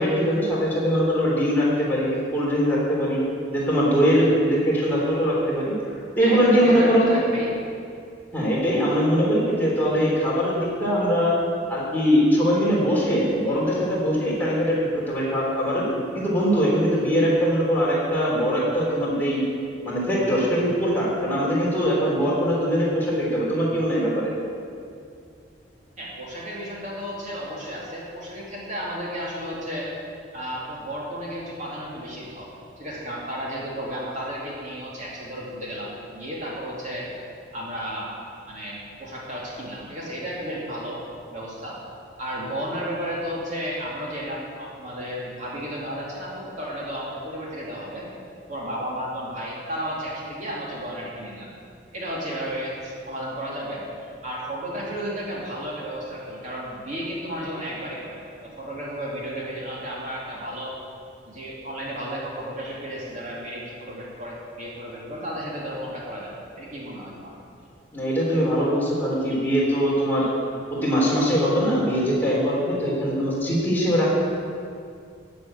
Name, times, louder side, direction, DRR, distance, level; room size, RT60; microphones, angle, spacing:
voice 1, 0.0-3.2 3.5-5.7 6.2-7.1 8.3-11.3 11.7-15.9 16.1-19.4 19.8-24.3 67.9-70.3 70.7-74.2, equal, 10° left, -7 dB, 3.4 m, -22 dB
voice 2, 6.2-7.5 26.0-29.9 30.3-32.5 32.8-37.1 37.5-38.2 38.5-41.8 42.2-48.1 48.5-51.5 51.9-60.8 61.3-67.3, equal, 40° right, -5 dB, 2.7 m, -33 dB
12.5 x 7.0 x 9.0 m, 2.4 s
head